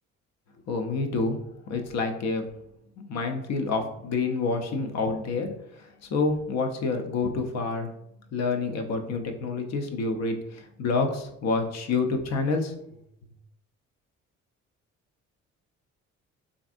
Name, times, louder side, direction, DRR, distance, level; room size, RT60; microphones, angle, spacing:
voice 1, 0.7-1.4 1.7-2.5 3.0-5.5 6.1-7.9 8.3-13.0, left 3 dB, 60° left, 6 dB, 0.5 m, -28 dB
3.3 x 2.5 x 2.4 m, 0.79 s
cardioid pair, 90°, 30 cm